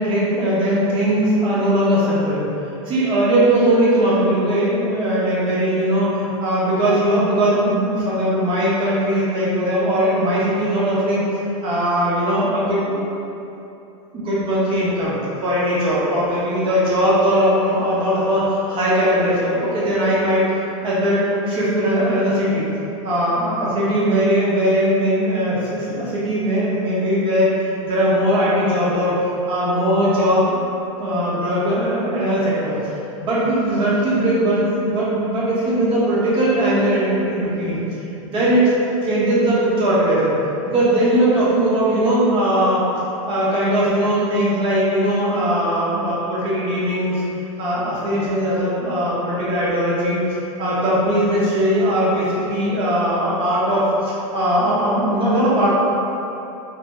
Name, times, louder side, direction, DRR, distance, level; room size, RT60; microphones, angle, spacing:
voice 1, 0.0-2.5 2.9-6.0 6.4-11.2 11.6-13.0 14.1-15.2 15.4-20.4 20.8-22.7 23.0-29.2 29.5-30.5 31.0-32.8 33.2-37.8 38.2-38.7 39.0-40.3 40.6-42.8 43.3-47.2 47.6-50.2 50.6-55.7, right 1 dB, 30° right, -7 dB, 0.9 m, -19 dB
3.4 x 2.2 x 3.0 m, 2.8 s
supercardioid pair, 140°, 17 cm